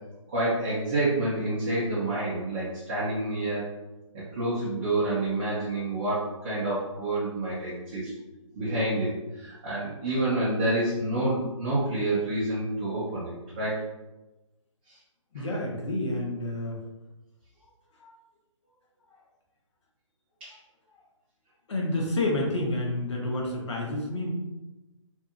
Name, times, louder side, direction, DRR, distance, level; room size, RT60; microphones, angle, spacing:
voice 1, 0.3-3.6 4.1-8.1 8.6-9.1 9.4-13.8 20.4-20.5, right 2 dB, 15° right, -11 dB, 0.5 m, -28 dB
voice 2, 15.3-16.8 18.0-18.1 21.7-24.3, left 1 dB, 60° left, -2 dB, 0.9 m, -29 dB
2.7 x 2.4 x 2.4 m, 1.0 s
hypercardioid pair, 170°, 17 cm